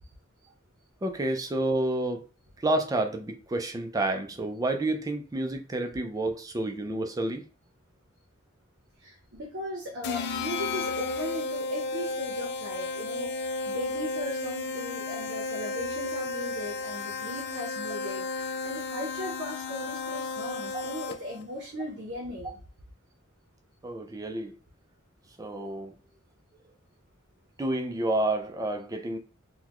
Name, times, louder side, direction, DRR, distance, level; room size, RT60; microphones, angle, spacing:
voice 1, 1.0-2.2 2.6-7.4 23.8-24.5 25.4-25.9 27.6-29.2, right 2 dB, 15° right, 0.4 m, -29 dB
voice 2, 9.0-22.6, equal, 60° right, 0.8 m, -38 dB
sound 1, 10.0-21.4, left 3 dB, 55° left, 0.4 m, -33 dB
3.8 x 2.2 x 3.0 m
head